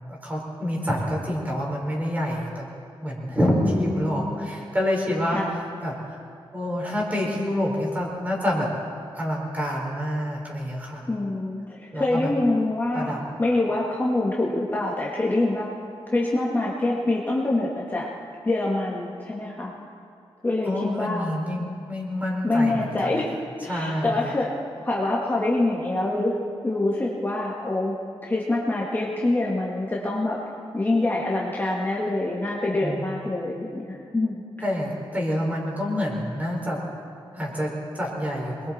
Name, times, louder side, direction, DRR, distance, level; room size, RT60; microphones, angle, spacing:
voice 1, 0.1-2.7 3.0-6.2 6.5-8.7 9.1-11.1 11.9-12.3 12.9-13.2 20.6-23.2 23.7-24.2 32.8-33.1 34.6-36.8 37.3-38.7, equal, 15° right, -2 dB, 4.6 m, -27 dB
voice 2, 3.6-4.5 5.3-5.5 11.1-13.1 13.4-15.7 16.1-18.1 18.4-19.7 20.4-21.3 22.4-23.3 23.6-24.5 24.8-26.3 26.6-27.9 28.3-30.4 30.7-34.4, left 2 dB, 20° left, -4 dB, 2.0 m, -25 dB
27.0 x 21.5 x 4.4 m, 2.3 s
wide cardioid pair, 170°, 10 cm